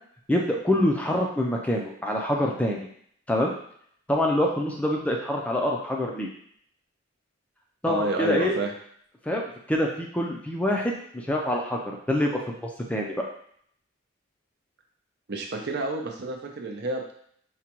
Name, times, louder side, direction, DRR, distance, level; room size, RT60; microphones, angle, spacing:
voice 1, 0.3-2.8 3.3-3.6 4.1-6.3 7.8-8.5 9.3-11.0 11.2-13.3, left 1 dB, 5° left, -1 dB, 0.4 m, -26 dB
voice 2, 7.8-8.7 15.3-17.1, right 2 dB, 55° right, 2 dB, 0.6 m, -29 dB
4.9 x 2.2 x 2.9 m, 0.65 s
head